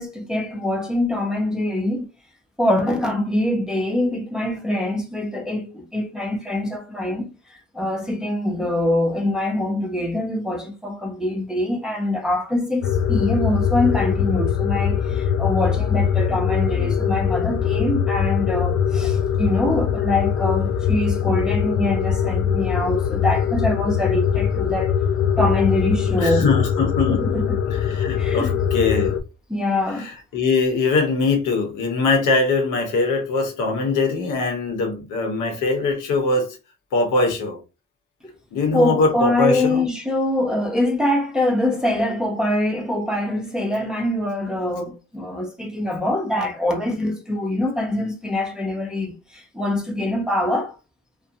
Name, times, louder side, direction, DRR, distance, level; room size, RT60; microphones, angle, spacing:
voice 1, 0.0-2.1 2.6-24.9 25.4-26.5 27.1-27.6 28.2-28.5 29.5-30.1 38.7-50.7, left 1 dB, ahead, 0.7 m, -24 dB
sound 1, 12.8-29.2, left 8 dB, 50° left, 0.5 m, -22 dB
voice 2, 26.2-27.4 27.7-29.1 30.0-36.6 36.9-37.6 38.5-39.9, left 3 dB, 90° left, 1.0 m, -22 dB
2.4 x 2.2 x 2.7 m
cardioid pair, 90°, 30 cm